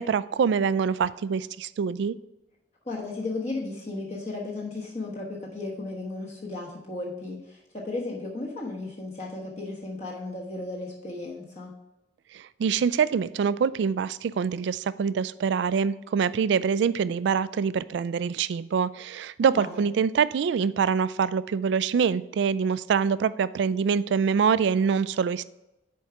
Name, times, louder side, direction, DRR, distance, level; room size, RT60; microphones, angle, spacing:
voice 1, 0.0-2.1 12.3-25.4, right 6 dB, 75° right, 17 dB, 0.3 m, -25 dB
voice 2, 2.8-11.7 19.4-19.8, left 2 dB, 35° left, -4 dB, 1.1 m, -35 dB
7.0 x 4.6 x 4.9 m, 0.94 s
head